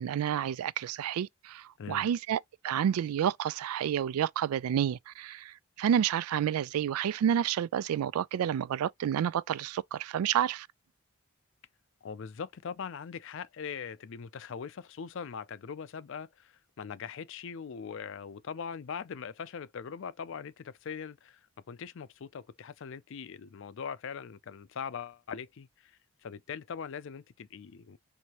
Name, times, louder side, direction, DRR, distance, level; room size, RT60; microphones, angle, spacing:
voice 1, 0.0-10.7, right 9 dB, 90° right, 0.3 m, -30 dB
voice 2, 12.0-21.4 21.7-28.0, left 6 dB, 60° left, 0.4 m, -41 dB
4.6 x 2.7 x 2.9 m
head